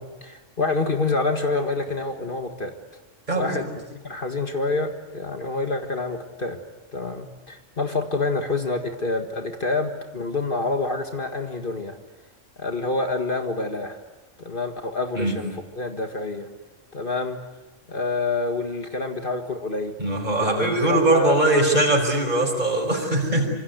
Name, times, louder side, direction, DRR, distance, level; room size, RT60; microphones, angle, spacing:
voice 1, 0.0-2.7 3.4-6.6 6.9-12.0 12.6-14.0 14.4-16.5 16.9-17.4 17.9-20.0 20.4-21.4, left 3 dB, 45° left, 5 dB, 1.9 m, -27 dB
voice 2, 3.3-3.6 15.2-15.3 20.0-23.5, right 1 dB, 35° right, 2 dB, 5.3 m, -21 dB
26.5 x 26.0 x 8.1 m, 1.1 s
omnidirectional pair, 1.3 m